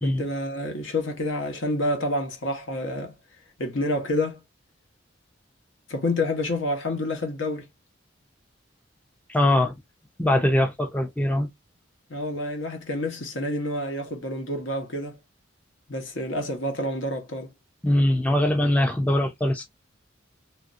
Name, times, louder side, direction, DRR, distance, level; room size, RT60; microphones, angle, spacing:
voice 1, 0.0-3.1 3.6-4.4 5.9-7.6 12.1-15.2 15.9-17.5, left 1 dB, 75° left, 1.0 m, -28 dB
voice 2, 9.3-9.8 10.2-11.5 17.8-19.6, left 1 dB, 5° left, 0.4 m, -22 dB
3.1 x 2.5 x 2.5 m
head